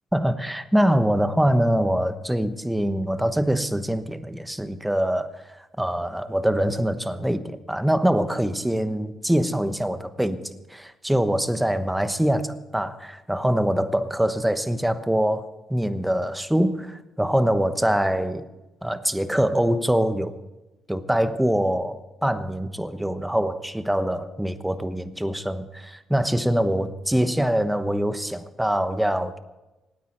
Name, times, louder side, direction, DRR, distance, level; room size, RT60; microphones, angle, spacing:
voice 1, 0.1-5.4 5.8-18.4 18.8-20.4 20.9-29.4, equal, 5° right, 11 dB, 1.0 m, -24 dB
26.0 x 9.4 x 4.4 m, 1.1 s
cardioid pair, 90°, 0 cm